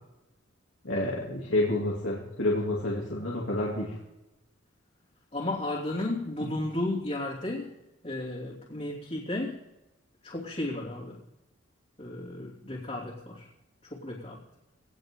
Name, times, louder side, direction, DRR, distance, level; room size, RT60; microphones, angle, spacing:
voice 1, 0.8-3.9, left 1 dB, 75° left, -4 dB, 3.0 m, -29 dB
voice 2, 5.3-7.7 8.0-9.6 10.2-11.2 12.0-13.4 13.9-14.4, left 1 dB, 35° left, -6 dB, 3.1 m, -33 dB
19.5 x 18.0 x 3.9 m, 0.92 s
head